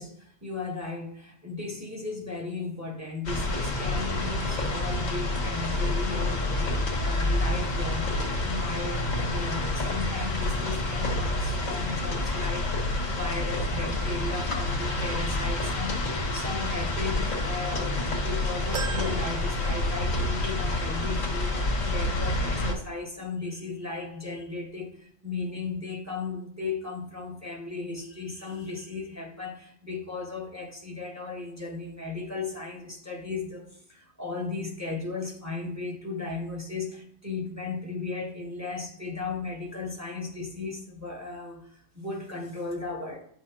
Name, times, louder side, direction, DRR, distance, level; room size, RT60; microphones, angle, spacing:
voice 1, 0.0-43.2, left 3 dB, 15° right, 0 dB, 1.2 m, -36 dB
sound 1, 3.2-22.7, left 2 dB, 85° left, 1.9 m, -28 dB
sound 2, 18.7-20.4 20.8-20.9 22.1-22.2, right 5 dB, 50° right, 0.4 m, -38 dB
9.7 x 6.2 x 2.9 m, 0.68 s
omnidirectional pair, 1.3 m